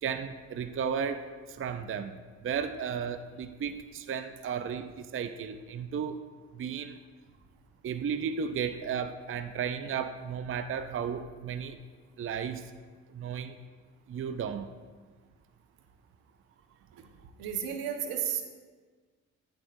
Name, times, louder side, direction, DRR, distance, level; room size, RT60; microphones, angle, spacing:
voice 1, 0.0-6.2 6.5-7.0 7.8-11.8 12.2-12.7 13.1-13.6 14.1-14.7, right 7 dB, 35° right, 9 dB, 0.5 m, -34 dB
voice 2, 17.4-18.4, right 8 dB, 75° right, 5 dB, 1.2 m, -32 dB
14.0 x 7.6 x 2.6 m, 1.5 s
supercardioid pair, 65°, 36 cm